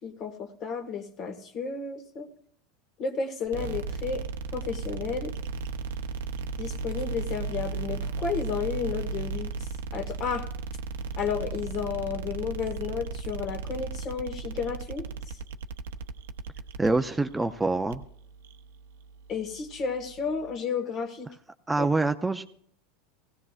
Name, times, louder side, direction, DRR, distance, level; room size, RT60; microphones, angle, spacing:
voice 1, 0.0-2.3 3.0-4.2 4.5-5.3 6.6-9.5 9.9-10.5 11.2-15.4 19.3-21.3 21.8-21.9, left 6 dB, 45° left, 8 dB, 1.7 m, -32 dB
sound 1, 3.4-20.5, right 4 dB, 80° right, 0.7 m, -36 dB
voice 2, 16.8-18.0 21.7-22.4, right 2 dB, 10° right, 8 dB, 0.5 m, -25 dB
17.0 x 16.0 x 2.4 m, 0.64 s
hypercardioid pair, 100°, 0 cm